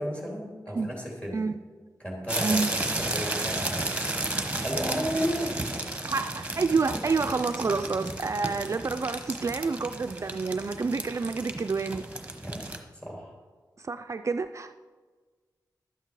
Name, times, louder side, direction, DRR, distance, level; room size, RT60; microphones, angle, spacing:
voice 1, 0.0-1.4 2.0-4.3 4.6-5.5 12.4-12.6 13.0-13.3, equal, 15° left, -2 dB, 3.2 m, -33 dB
sound 1, 2.3-12.8, right 2 dB, 15° right, 1.1 m, -33 dB
voice 2, 6.0-12.0 13.8-14.8, right 4 dB, 40° right, 8 dB, 0.4 m, -28 dB
12.0 x 8.9 x 4.8 m, 1.4 s
wide cardioid pair, 130°, 8 cm